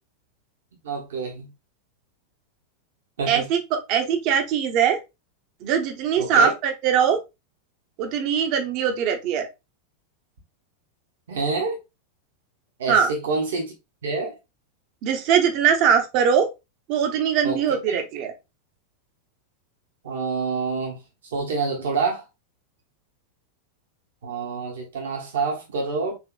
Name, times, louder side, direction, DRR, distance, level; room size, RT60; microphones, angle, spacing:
voice 1, 0.8-1.5 3.2-3.5 6.2-6.5 11.3-11.8 12.8-13.7 14.0-14.4 17.4-17.6 17.9-18.0 20.0-21.0 21.3-22.2 24.2-26.2, right 4 dB, 60° right, 1.0 m, -27 dB
voice 2, 3.3-5.0 5.6-7.2 8.0-9.5 12.9-13.1 15.0-16.5 16.9-18.3, right 7 dB, 40° right, 0.8 m, -21 dB
4.4 x 2.9 x 2.3 m
figure-of-eight pair, 90°, 0 cm